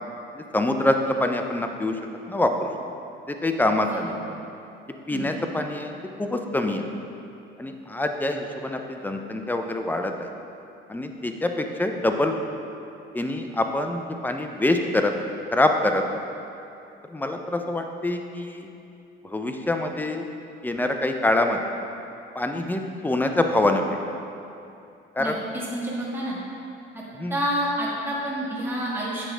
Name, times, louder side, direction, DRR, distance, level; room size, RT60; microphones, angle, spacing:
voice 1, 0.3-2.0 2.3-2.7 3.4-4.1 5.1-5.9 6.2-6.8 7.6-10.3 10.9-12.3 13.1-16.0 17.1-18.7 19.3-20.2 20.6-21.6 22.4-24.0 25.2-25.4 27.2-27.3, left 1 dB, 10° left, 4 dB, 0.5 m, -25 dB
voice 2, 25.2-26.4 27.3-29.2, equal, 10° right, -6 dB, 1.6 m, -28 dB
8.5 x 6.2 x 3.3 m, 2.7 s
cardioid pair, 110°, 21 cm